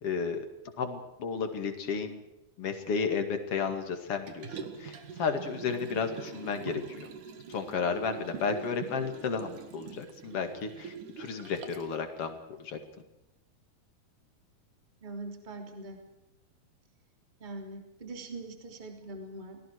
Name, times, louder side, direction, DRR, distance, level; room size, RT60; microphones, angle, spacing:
voice 1, 0.0-0.5 0.8-2.2 2.6-7.1 7.5-12.8, left 5 dB, 45° left, 6 dB, 2.7 m, -33 dB
Liquid, 4.3-11.9 12.4-12.5, right 6 dB, 60° right, 3.0 m, -43 dB
voice 2, 15.0-16.0 17.4-19.6, right 2 dB, 15° right, 4 dB, 2.9 m, -42 dB
29.0 x 20.0 x 4.7 m, 0.93 s
omnidirectional pair, 4.4 m